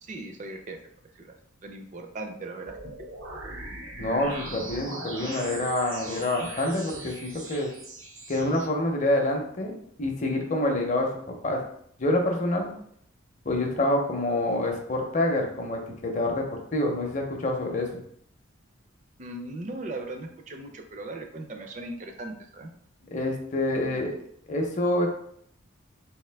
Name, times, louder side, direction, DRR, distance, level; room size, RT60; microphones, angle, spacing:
voice 1, 0.0-0.8 1.2-1.3 1.6-2.9 19.2-22.7, right 2 dB, 35° right, 4 dB, 0.4 m, -38 dB
sound 1, 2.7-8.7, right 2 dB, 75° right, 0.7 m, -40 dB
voice 2, 4.0-7.7 8.3-9.7 10.0-11.1 11.4-11.6 12.0-12.7 13.5-18.0 23.1-24.1 24.5-25.1, left 1 dB, 35° left, 2 dB, 0.6 m, -27 dB
3.5 x 2.6 x 3.3 m, 0.67 s
head